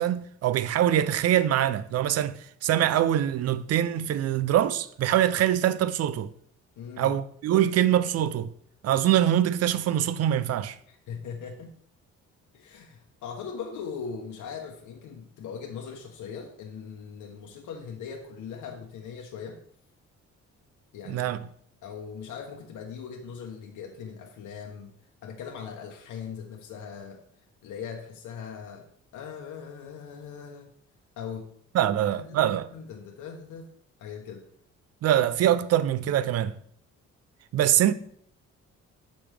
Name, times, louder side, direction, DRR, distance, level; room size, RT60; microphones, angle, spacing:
voice 1, 0.0-6.3 7.0-8.5 8.8-10.8 21.1-21.4 31.7-32.7 35.0-36.5 37.5-37.9, right 11 dB, 55° right, 0.5 m, -24 dB
voice 2, 6.8-7.1 10.9-11.7 12.5-19.6 20.9-21.3 21.8-24.9 25.2-27.2 27.6-28.9 29.1-30.7 31.2-31.5 31.8-31.9 32.3-33.7 34.0-34.4, left 6 dB, 75° left, 1.0 m, -40 dB
7.2 x 5.2 x 3.4 m
cardioid pair, 90°, 30 cm